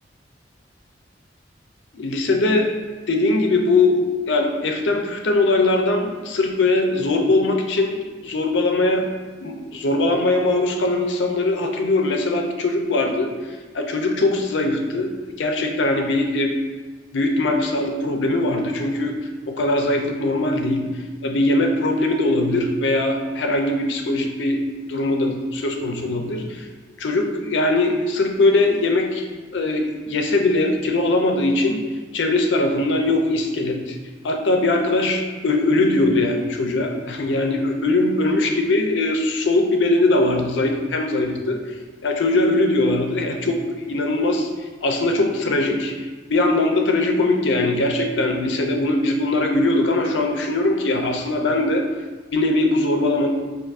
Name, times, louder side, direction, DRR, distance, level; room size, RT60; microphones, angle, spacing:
voice 1, 1.9-2.7 3.1-4.0 4.3-9.1 9.4-13.3 13.7-16.5 17.1-19.1 19.5-20.8 21.2-24.6 24.9-26.6 27.0-29.3 29.5-31.8 32.1-34.0 34.2-41.6 42.0-44.5 44.8-45.9 46.3-51.9 52.3-53.3, left 2 dB, 90° left, 3 dB, 0.5 m, -21 dB
5.2 x 2.6 x 2.5 m, 1.4 s
head